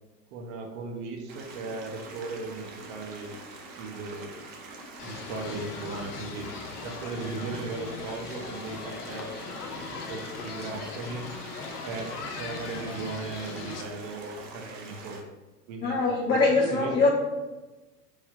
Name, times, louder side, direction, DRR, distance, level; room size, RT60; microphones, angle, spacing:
voice 1, 0.3-3.4 3.8-4.5 5.0-6.5 6.8-9.3 9.7-11.3 11.8-15.2 15.7-16.0 16.3-17.1, right 3 dB, 45° right, 2 dB, 0.7 m, -37 dB
sound 1, 1.3-15.2, right 3 dB, 20° right, 0.4 m, -45 dB
sound 2, 5.0-13.8, left 5 dB, 70° left, 0.7 m, -39 dB
voice 2, 15.8-17.1, left 3 dB, 20° left, -4 dB, 0.7 m, -23 dB
3.3 x 2.7 x 4.5 m, 1.2 s
figure-of-eight pair, 85°, 48 cm